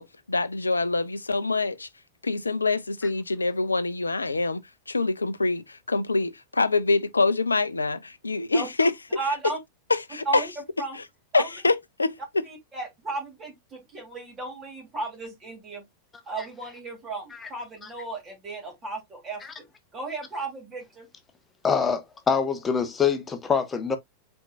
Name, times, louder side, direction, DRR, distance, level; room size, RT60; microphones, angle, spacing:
voice 1, 0.0-1.9 2.2-8.9 9.3-9.4 9.9-10.5 10.9-11.0 11.3-12.5, left 3 dB, 80° left, 0.5 m, -25 dB
voice 2, 9.2-9.6 10.3-10.5 10.8-11.0 11.3-11.5 12.5-15.8 16.3-19.7 19.9-21.1, right 3 dB, 25° right, 2.7 m, -34 dB
voice 3, 21.6-24.0, left 6 dB, 20° left, 1.0 m, -25 dB
4.4 x 4.2 x 2.5 m
figure-of-eight pair, 90°, 0 cm